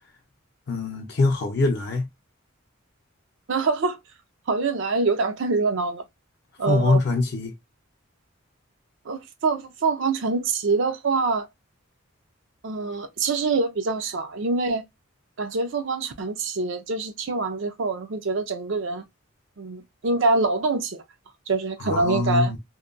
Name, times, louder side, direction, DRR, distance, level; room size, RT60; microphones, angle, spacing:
voice 1, 0.7-2.1 6.7-7.5 21.8-22.6, left 3 dB, 55° left, 0.5 m, -23 dB
voice 2, 3.5-4.0 4.5-6.0 6.6-7.0 9.1-11.5 12.6-14.8 15.4-19.1 19.6-21.0 21.5-22.5, right 3 dB, 60° right, 0.5 m, -25 dB
2.7 x 2.1 x 2.4 m
head